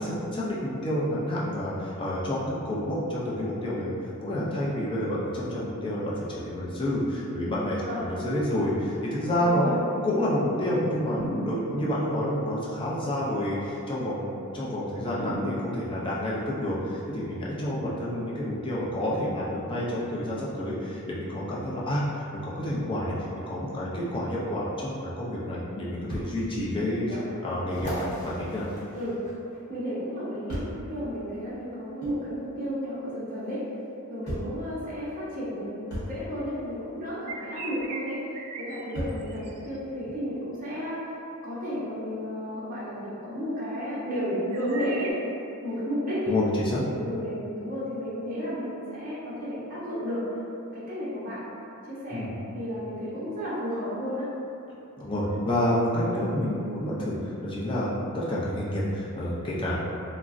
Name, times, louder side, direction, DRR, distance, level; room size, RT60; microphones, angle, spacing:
voice 1, 0.0-3.9 4.2-9.7 10.0-27.1 27.4-28.7 46.3-46.8 52.1-52.3 55.0-59.8, left 1 dB, 20° left, -7 dB, 0.5 m, -29 dB
voice 2, 9.4-9.9 27.0-27.3 28.9-29.2 29.7-30.6 30.9-33.6 34.1-38.2 38.6-41.1 41.4-45.1 45.6-46.3 46.8-50.2 50.7-51.4 51.9-54.3, equal, 40° right, -10 dB, 0.7 m, -32 dB
sound 1, 11.2-12.0 15.2-16.1, equal, 75° left, 0.8 m, -34 dB
sound 2, 26.1-26.3 26.9-27.0 27.7-29.6 30.5-30.8 32.0-32.2 33.4-33.5 34.3-34.6 35.9-36.1 37.8-37.9 38.9-39.3 40.1-40.2, equal, 45° left, 0.9 m, -35 dB
sound 3, 37.1-39.8 44.0-45.1, right 4 dB, 85° right, 0.3 m, -39 dB
3.6 x 2.0 x 2.4 m, 2.6 s
head